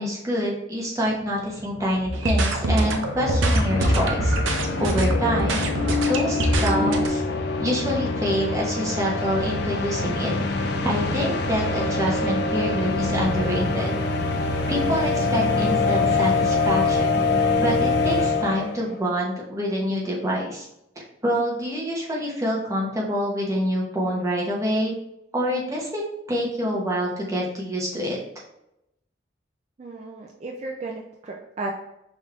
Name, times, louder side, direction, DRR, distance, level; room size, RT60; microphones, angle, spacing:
voice 1, 0.0-4.3 4.8-5.6 6.0-7.2 7.6-10.3 10.8-14.0 14.7-17.2 17.6-20.7 21.0-24.9 25.3-26.0 26.3-28.2, equal, 15° right, -4 dB, 0.8 m, -26 dB
sound 1, 1.2-1.3 1.4-18.9, left 3 dB, 55° left, 0.4 m, -25 dB
sound 2, 2.0-7.1, right 1 dB, 80° right, 0.6 m, -24 dB
voice 2, 29.8-31.7, right 2 dB, 35° right, 0 dB, 0.3 m, -34 dB
5.1 x 3.2 x 2.4 m, 0.84 s
head